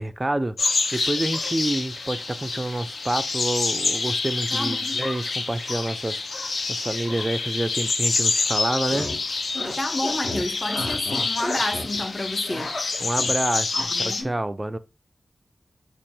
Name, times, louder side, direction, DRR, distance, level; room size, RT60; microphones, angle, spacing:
voice 1, 0.0-9.1 13.0-14.8, right 1 dB, 20° right, 0.3 m, -28 dB
sound 1, 0.6-14.2, left 3 dB, 75° left, 0.5 m, -27 dB
voice 2, 4.5-5.0 9.8-12.7 13.9-14.3, left 1 dB, 20° left, 0.6 m, -30 dB
sound 2, 8.7-9.2 9.5-9.8 10.0-12.0 12.3-13.3 13.7-13.8, left 1 dB, 55° left, 0.9 m, -32 dB
3.3 x 2.3 x 4.2 m
wide cardioid pair, 115°, 0 cm